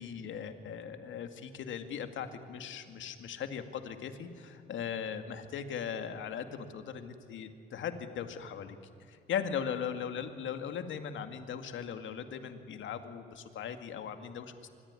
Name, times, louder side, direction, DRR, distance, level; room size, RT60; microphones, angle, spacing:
voice 1, 0.0-8.8 9.1-14.7, left 7 dB, 75° left, 8 dB, 2.2 m, -39 dB
25.0 x 22.0 x 9.9 m, 2.6 s
cardioid pair, 90°, 20 cm